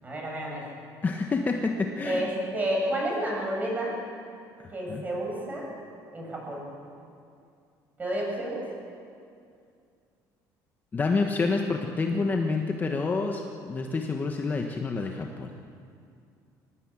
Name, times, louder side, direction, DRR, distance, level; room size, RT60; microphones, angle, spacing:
voice 1, 0.0-0.6 2.0-3.9 4.7-5.7 6.1-6.6 8.0-8.6, right 1 dB, 20° right, -1 dB, 7.2 m, -30 dB
voice 2, 1.0-2.3 4.6-5.0 10.9-15.5, left 4 dB, 25° left, 3 dB, 1.3 m, -28 dB
23.0 x 18.5 x 8.7 m, 2.4 s
cardioid pair, 145°, 8 cm